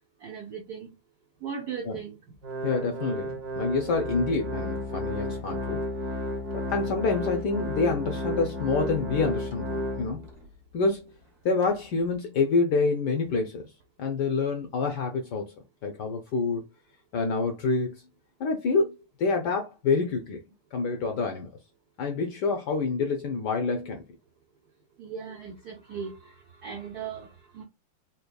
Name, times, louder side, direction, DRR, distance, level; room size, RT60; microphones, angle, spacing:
voice 1, 0.2-0.9 1.4-2.2 25.0-27.6, right 6 dB, 75° right, 0.8 m, -38 dB
Organ, 2.4-10.4 10.9-11.0 11.6-11.7, left 1 dB, 55° right, 1.3 m, -32 dB
voice 2, 2.6-5.8 6.5-10.3 10.7-11.1 11.4-13.6 14.0-15.5 15.8-16.6 17.1-18.0 18.4-18.9 19.2-20.4 20.7-21.5 22.0-24.0, left 4 dB, 70° left, 1.0 m, -27 dB
4.3 x 2.8 x 2.2 m
omnidirectional pair, 2.4 m